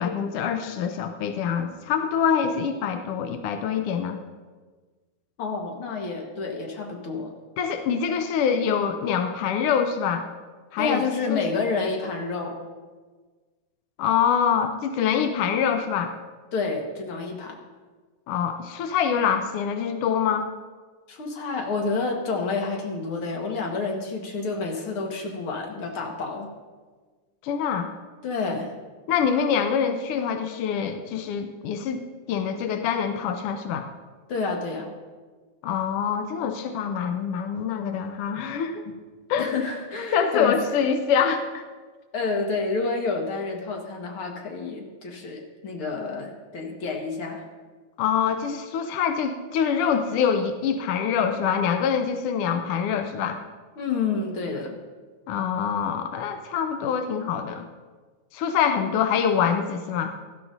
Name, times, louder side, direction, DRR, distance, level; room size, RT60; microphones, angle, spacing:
voice 1, 0.0-4.2 7.6-10.3 10.7-11.4 14.0-16.1 18.3-20.5 27.4-27.9 29.1-33.9 35.6-38.9 39.3-39.6 40.1-41.6 48.0-53.4 55.3-57.7 58.3-60.1, left 7 dB, 85° left, 7 dB, 1.2 m, -25 dB
voice 2, 5.4-7.3 10.8-12.6 16.5-17.6 21.1-26.5 28.2-28.7 34.3-34.9 39.4-40.6 42.1-47.4 53.8-54.8, left 4 dB, 50° left, 1 dB, 2.0 m, -29 dB
17.5 x 13.0 x 2.7 m, 1.4 s
omnidirectional pair, 3.4 m